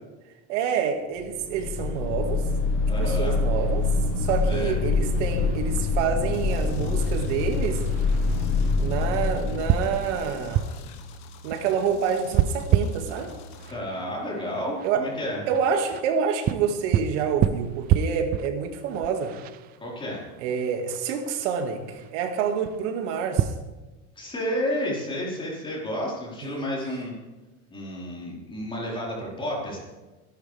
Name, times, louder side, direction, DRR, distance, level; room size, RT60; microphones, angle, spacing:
voice 1, 0.5-2.4 3.0-3.9 4.2-7.8 8.8-10.6 11.4-13.3 14.8-15.0 15.5-19.3 20.4-23.5 26.4-26.7 29.2-29.3, right 6 dB, 90° right, 4 dB, 2.2 m, -27 dB
sound 1, 1.3-10.7, left 3 dB, 35° left, 1.7 m, -25 dB
voice 2, 2.9-3.4 4.4-4.7 13.7-15.4 19.8-20.2 24.2-27.1 27.7-29.8, equal, 15° left, -4 dB, 4.6 m, -31 dB
sound 2, 3.5-23.5, right 10 dB, 25° right, 0.4 m, -31 dB
sound 3, 6.3-13.7, left 3 dB, 50° left, 1.5 m, -46 dB
24.5 x 11.5 x 3.5 m, 1.1 s
cardioid pair, 170°, 35 cm